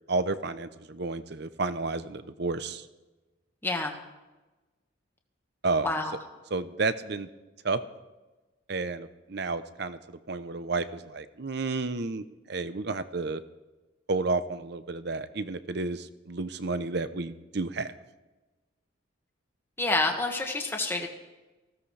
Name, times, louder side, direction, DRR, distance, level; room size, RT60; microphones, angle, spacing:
voice 1, 0.1-2.9 5.6-5.9 6.5-7.3 7.6-7.8 8.7-13.4 14.1-17.9, right 3 dB, 55° right, 12 dB, 0.7 m, -31 dB
voice 2, 3.6-3.9 5.8-6.2 19.8-21.1, left 2 dB, 10° left, 2 dB, 1.6 m, -28 dB
19.5 x 16.0 x 3.4 m, 1.1 s
head